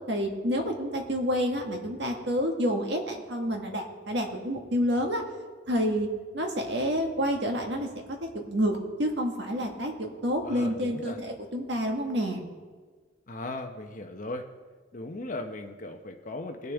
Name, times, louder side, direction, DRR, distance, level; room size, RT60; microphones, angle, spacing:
voice 1, 0.1-5.2 5.7-6.1 6.3-7.9 8.3-12.4, equal, 65° right, 2 dB, 1.6 m, -28 dB
voice 2, 10.4-11.2 13.3-14.4 14.9-16.7, left 2 dB, 45° left, 5 dB, 0.8 m, -37 dB
19.0 x 6.7 x 3.5 m, 1.4 s
head